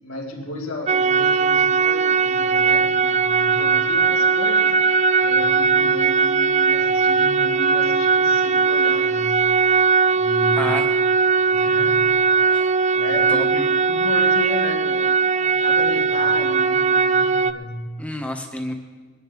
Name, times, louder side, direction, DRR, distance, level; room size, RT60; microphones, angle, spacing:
voice 1, 0.0-4.8 5.2-9.4 10.1-10.8 11.5-12.1 12.4-13.6 13.9-15.1 15.4-17.9, left 1 dB, 85° left, 1 dB, 2.3 m, -33 dB
sound 1, 0.9-17.5, right 5 dB, 30° right, 0.4 m, -19 dB
voice 2, 10.6-10.9 12.5-12.7 13.3-13.7 18.0-18.7, left 1 dB, 5° left, 3 dB, 1.2 m, -29 dB
22.0 x 10.5 x 3.8 m, 1.4 s
head